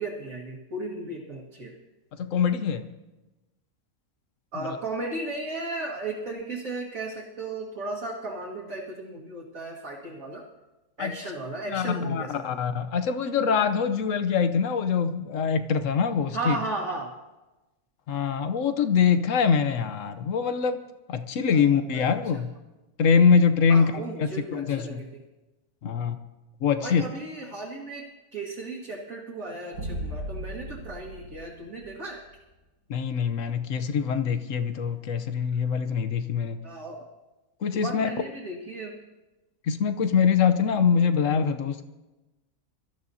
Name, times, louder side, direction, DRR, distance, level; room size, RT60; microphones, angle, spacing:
voice 1, 0.0-1.8 4.5-10.5 11.0-12.6 16.3-17.1 21.5-21.6 21.9-22.0 22.3-22.4 23.7-25.2 26.8-32.2 36.6-37.1 37.7-39.0, right 2 dB, 55° right, -5 dB, 2.3 m, -35 dB
voice 2, 2.2-2.9 4.6-4.7 11.0-11.1 11.7-16.6 18.1-20.8 21.1-22.5 23.0-25.0 25.8-26.2 26.6-27.0 32.9-36.6 37.6-38.1 39.6-41.8, left 6 dB, 60° left, 10 dB, 1.1 m, -24 dB
sound 1, 29.7-32.4, equal, 75° right, 2.4 m, -37 dB
24.0 x 13.5 x 2.8 m, 1.1 s
omnidirectional pair, 1.7 m